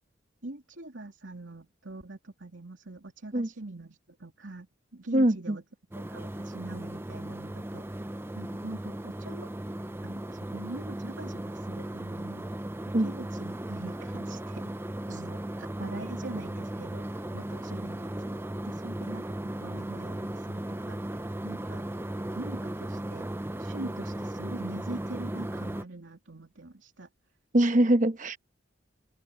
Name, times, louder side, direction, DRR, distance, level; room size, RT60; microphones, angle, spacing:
voice 1, 0.4-5.6 5.9-9.5 10.0-12.5 13.0-18.4 18.6-21.9 22.3-23.3 23.6-27.1, right 2 dB, 80° right, 2.9 m, -43 dB
voice 2, 5.1-5.6 12.9-13.1 27.5-28.4, right 1 dB, 40° right, 1.1 m, -23 dB
sound 1, 5.9-25.8, right 1 dB, 10° right, 0.6 m, -36 dB
head